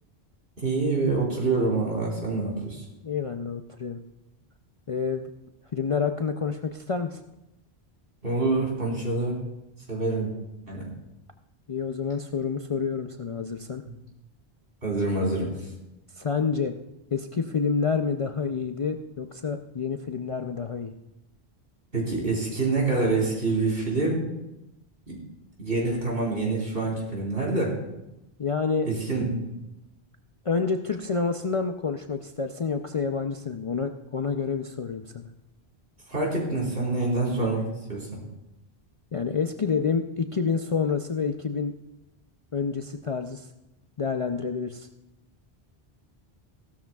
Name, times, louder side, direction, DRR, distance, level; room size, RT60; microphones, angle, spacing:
voice 1, 0.6-2.8 8.2-9.4 9.9-10.3 10.7-10.9 13.9-14.0 14.8-15.5 21.9-24.2 25.1-25.2 25.6-27.7 28.9-29.4 36.1-38.2, right 3 dB, 65° right, -3 dB, 4.1 m, -26 dB
voice 2, 3.0-4.0 4.9-5.3 5.7-7.2 11.7-13.8 16.1-16.8 17.1-20.9 28.4-28.9 30.4-35.3 39.1-41.8 42.5-43.5 44.0-44.9, left 5 dB, 40° left, 5 dB, 0.5 m, -28 dB
16.5 x 13.0 x 2.3 m, 0.91 s
omnidirectional pair, 1.1 m